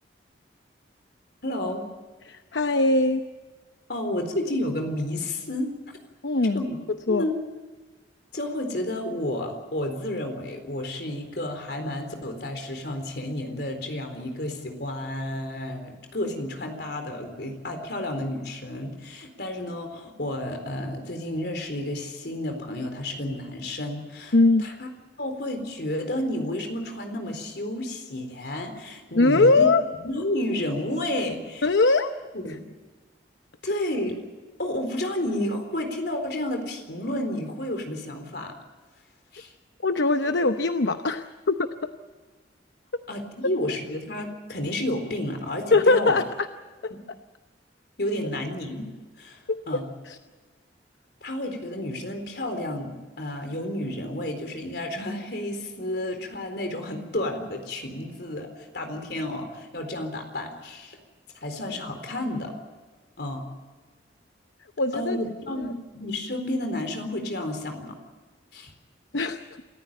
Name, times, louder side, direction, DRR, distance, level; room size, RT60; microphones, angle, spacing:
voice 1, 1.4-1.8 3.9-5.7 6.5-6.8 7.1-7.4 8.3-24.9 25.2-29.7 30.0-31.6 32.4-32.7 33.6-34.1 34.6-38.5 39.3-39.5 43.1-46.2 46.9-47.0 48.0-48.9 49.2-49.4 49.7-49.9 51.2-61.0 61.4-62.5 63.2-63.5 64.9-68.0 68.5-68.7, left 1 dB, 60° left, 5 dB, 4.0 m, -31 dB
voice 2, 2.2-3.2 6.2-6.6 7.1-7.2 24.3-24.7 29.1-29.8 31.6-32.1 32.5-32.6 39.8-41.9 45.7-46.5 46.8-46.9 49.5-49.6 50.1-50.2 64.8-65.2 65.6-65.7 69.1-69.6, left 3 dB, 80° left, 8 dB, 0.9 m, -21 dB
27.0 x 14.5 x 8.9 m, 1.4 s
head